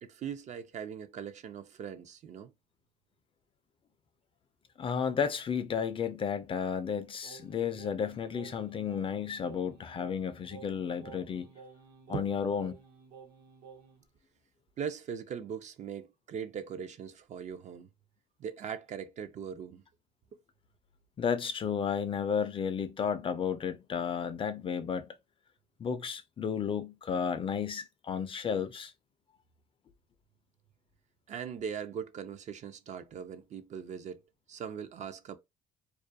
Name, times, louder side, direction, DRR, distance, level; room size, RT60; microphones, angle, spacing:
voice 1, 0.0-2.5 12.1-12.3 14.8-17.9 18.4-19.8 20.3-20.4 31.3-34.2 34.5-35.4, right 7 dB, 45° right, 0.4 m, -40 dB
voice 2, 4.8-11.5 12.1-12.7 21.2-25.1 25.8-28.9, left 7 dB, 30° left, 0.3 m, -33 dB
Singing, 7.2-14.0, right 6 dB, 70° right, 0.8 m, -52 dB
2.3 x 2.2 x 2.5 m
cardioid pair, 110°, 17 cm